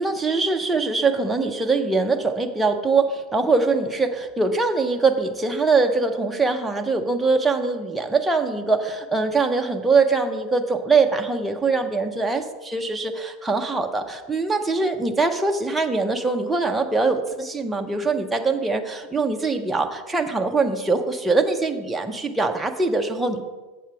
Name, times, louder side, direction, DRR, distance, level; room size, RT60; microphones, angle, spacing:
voice 1, 0.0-23.4, right 3 dB, 5° right, 3 dB, 0.5 m, -22 dB
7.4 x 4.5 x 6.8 m, 1.2 s
supercardioid pair, 165°, 0 cm